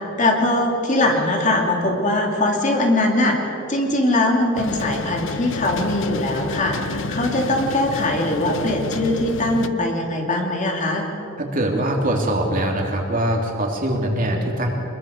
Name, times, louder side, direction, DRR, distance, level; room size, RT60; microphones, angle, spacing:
voice 1, 0.2-3.4 3.7-11.1, left 1 dB, 35° left, 1 dB, 2.8 m, -21 dB
sound 1, 4.5-9.7, left 3 dB, 60° left, 0.8 m, -29 dB
voice 2, 11.4-14.7, right 1 dB, 40° right, 1 dB, 3.1 m, -22 dB
25.0 x 22.0 x 6.6 m, 3.0 s
head